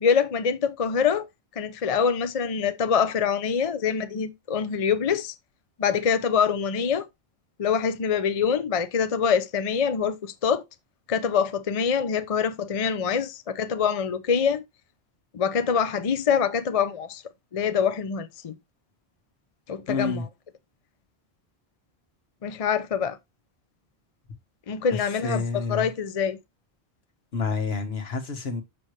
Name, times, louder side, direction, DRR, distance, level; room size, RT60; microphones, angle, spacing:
voice 1, 0.0-1.3 1.6-5.3 5.8-7.0 7.6-10.6 11.1-14.6 15.3-17.2 17.5-18.5 19.7-20.2 22.4-23.2 24.7-26.4, left 6 dB, 40° left, 0.6 m, -25 dB
voice 2, 19.9-20.2 25.2-25.9 27.3-28.6, left 4 dB, 70° left, 1.5 m, -28 dB
6.4 x 5.8 x 3.1 m
omnidirectional pair, 1.1 m